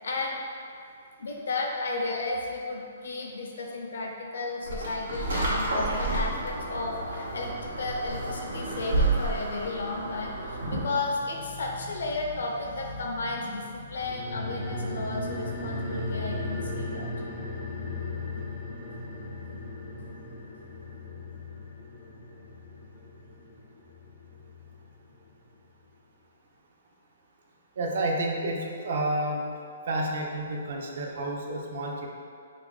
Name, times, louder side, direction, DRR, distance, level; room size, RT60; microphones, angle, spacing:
voice 1, 0.0-0.4 1.2-17.1, left 2 dB, 75° left, 0 dB, 0.4 m, -33 dB
sound 1, 4.7-11.0, right 2 dB, 85° right, 0.8 m, -30 dB
sound 2, 14.0-24.9 25.1-25.2, left 2 dB, 15° left, 0.4 m, -36 dB
voice 2, 27.8-29.4 29.9-32.1, right 1 dB, 55° right, 0 dB, 0.4 m, -30 dB
2.9 x 2.5 x 3.4 m, 2.4 s
hypercardioid pair, 165°, 0 cm